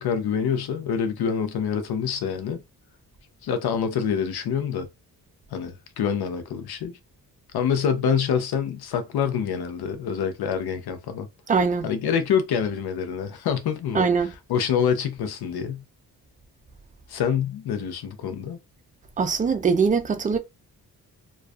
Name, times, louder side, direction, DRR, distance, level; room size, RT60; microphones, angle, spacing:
voice 1, 0.0-2.6 3.4-4.9 5.5-7.0 7.5-11.3 11.8-14.0 14.5-15.8 17.1-18.6, left 7 dB, 80° left, 0.6 m, -26 dB
voice 2, 11.5-11.9 13.9-14.3 19.2-20.4, right 5 dB, 20° right, 0.4 m, -22 dB
2.4 x 2.3 x 2.3 m
cardioid pair, 85°, 38 cm